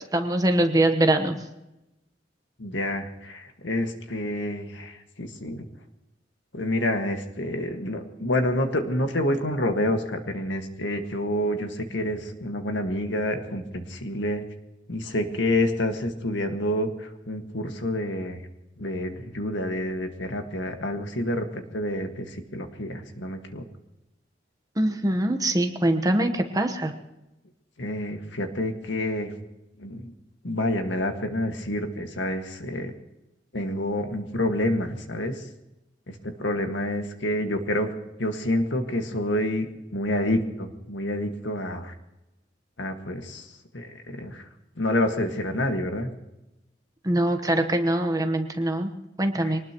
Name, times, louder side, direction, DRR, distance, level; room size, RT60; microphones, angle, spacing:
voice 1, 0.1-1.4 24.8-26.9 47.0-48.9 49.2-49.6, right 1 dB, 20° right, 6 dB, 1.1 m, -23 dB
voice 2, 2.6-5.7 6.5-14.4 14.9-18.4 18.8-23.6 27.8-29.3 29.8-30.1 30.4-32.9 33.5-35.4 36.1-37.9 38.2-41.9 42.8-43.5 43.7-44.5 44.8-46.1 49.4-49.6, left 1 dB, 85° left, 5 dB, 1.8 m, -28 dB
24.0 x 19.0 x 3.0 m, 0.94 s
head